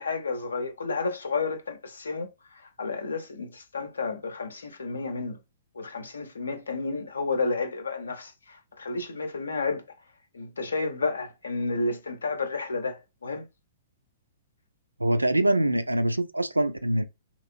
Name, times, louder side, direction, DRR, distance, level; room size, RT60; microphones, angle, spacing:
voice 1, 0.0-2.3 2.8-5.4 5.8-9.8 10.3-13.5, left 3 dB, 75° left, 0.7 m, -31 dB
voice 2, 15.0-17.0, right 1 dB, 90° right, 0.3 m, -24 dB
2.9 x 2.9 x 2.6 m
figure-of-eight pair, 110°, 0 cm